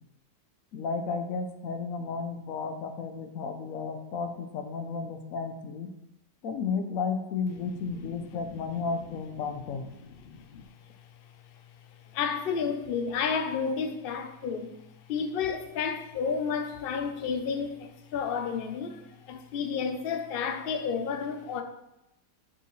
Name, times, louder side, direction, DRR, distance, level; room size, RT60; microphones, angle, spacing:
voice 1, 0.7-5.9 6.4-9.8, left 5 dB, 65° left, 0.9 m, -33 dB
voice 2, 7.8-8.8 9.5-9.6 10.0-10.6 11.5-11.6 12.0-14.8 15.1-21.6, left 6 dB, 90° left, 0.5 m, -32 dB
8.6 x 5.5 x 3.1 m
omnidirectional pair, 1.8 m